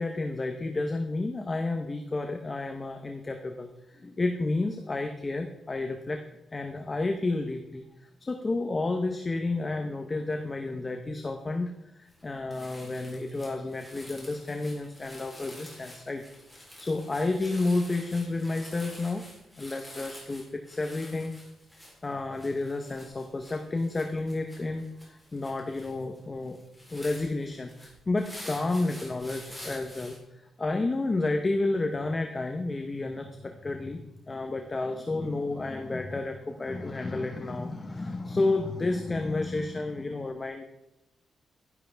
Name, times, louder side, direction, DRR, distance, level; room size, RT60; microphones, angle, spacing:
voice 1, 0.0-6.2 6.5-7.8 8.3-16.2 16.8-19.2 19.6-21.3 22.0-26.6 26.9-30.2 30.6-40.6, left 2 dB, 25° left, 4 dB, 0.9 m, -31 dB
sound 1, 12.1-12.2 12.5-30.2, left 1 dB, 5° left, 3.5 m, -48 dB
11.5 x 11.0 x 3.4 m, 0.90 s
cardioid pair, 130°, 0 cm